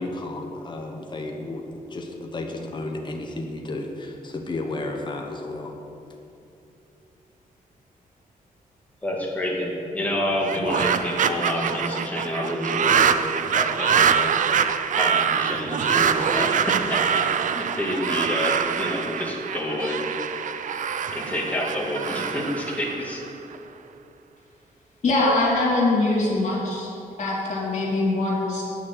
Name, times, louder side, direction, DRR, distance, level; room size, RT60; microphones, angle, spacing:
voice 1, 0.0-1.6 1.9-5.7, left 2 dB, 30° left, 2 dB, 1.1 m, -32 dB
voice 2, 9.0-13.1 13.3-14.6 15.0-17.0 17.5-20.0 21.1-23.2, left 1 dB, 10° left, -3 dB, 2.0 m, -28 dB
sound 1, 10.4-23.6, right 7 dB, 55° right, 0.4 m, -24 dB
voice 3, 25.0-26.9 27.2-28.6, left 2 dB, 45° left, -9 dB, 2.4 m, -22 dB
8.8 x 6.4 x 8.2 m, 2.7 s
wide cardioid pair, 125°, 15 cm